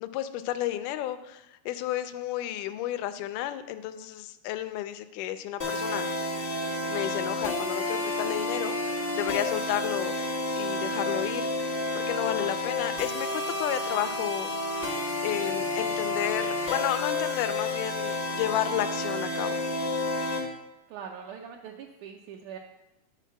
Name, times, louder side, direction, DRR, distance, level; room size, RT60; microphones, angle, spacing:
voice 1, 0.0-6.1 6.9-10.2 10.5-19.6, left 12 dB, 80° left, 10 dB, 2.0 m, -32 dB
sound 1, 5.6-20.4, left 2 dB, 45° left, 0.7 m, -30 dB
voice 2, 20.9-22.6, right 7 dB, 80° right, 1 dB, 1.9 m, -42 dB
9.3 x 4.0 x 7.0 m, 0.96 s
omnidirectional pair, 3.8 m